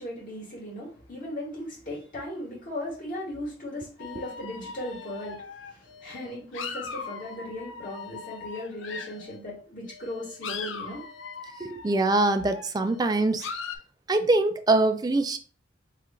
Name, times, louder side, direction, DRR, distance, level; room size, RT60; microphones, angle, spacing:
voice 1, 0.0-11.0, left 1 dB, 45° left, 2.1 m, -37 dB
sound 1, 4.0-9.4 9.9-13.8, left 5 dB, 85° left, 0.5 m, -40 dB
voice 2, 11.6-13.4 14.1-15.4, right 2 dB, 20° right, 0.4 m, -23 dB
3.6 x 2.5 x 4.3 m
head